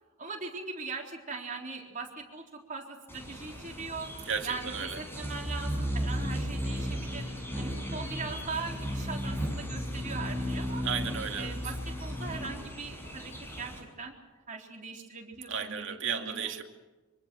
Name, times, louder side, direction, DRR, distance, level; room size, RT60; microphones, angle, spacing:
voice 1, 0.2-2.4 2.7-4.1 4.4-7.2 7.6-10.8 11.4-11.8 12.0-13.7 14.0-14.2 14.5-16.5, right 4 dB, 40° right, 0 dB, 4.0 m, -40 dB
sound 1, 3.1-13.8, equal, 10° left, 6.6 m, -35 dB
voice 2, 4.3-5.0 10.8-11.7 15.5-16.6, right 7 dB, 60° right, 4 dB, 2.6 m, -34 dB
25.5 x 25.0 x 6.3 m, 1.2 s
head